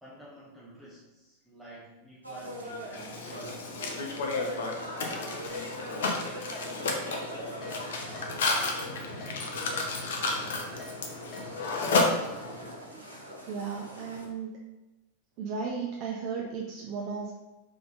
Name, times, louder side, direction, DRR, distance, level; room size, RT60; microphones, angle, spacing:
voice 1, 0.0-4.2, right 1 dB, ahead, -7 dB, 0.8 m, -50 dB
sound 1, 2.2-14.3, equal, 85° right, 0.8 m, -42 dB
Mechanisms, 2.9-12.7, left 3 dB, 60° left, 0.6 m, -32 dB
Keyboard (musical), 5.5-5.6 6.0-6.2 6.6-6.7 7.1-7.2 7.6-7.8 8.1-8.3 8.7-8.8 9.2-9.3 9.7-9.9 10.3-10.4 10.8-10.9 11.3-11.5, left 2 dB, 30° left, 0.9 m, -46 dB
voice 2, 13.5-14.6 15.4-17.3, right 5 dB, 40° right, -1 dB, 0.5 m, -35 dB
3.5 x 3.5 x 3.6 m, 1.1 s
figure-of-eight pair, 90°, 0 cm